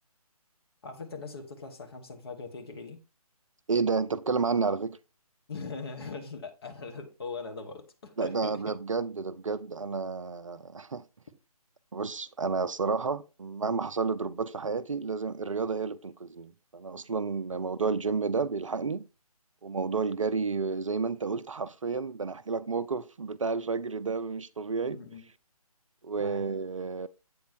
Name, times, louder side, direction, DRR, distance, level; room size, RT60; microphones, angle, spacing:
voice 1, 0.8-3.0 5.5-8.6 17.5-17.6 24.9-25.3 26.2-26.5, left 4 dB, 40° left, 1.4 m, -41 dB
voice 2, 3.7-5.0 8.2-11.0 11.9-19.0 19.6-25.0 26.0-27.1, right 4 dB, 55° right, 0.5 m, -31 dB
8.4 x 4.1 x 4.3 m
figure-of-eight pair, 145°, 20 cm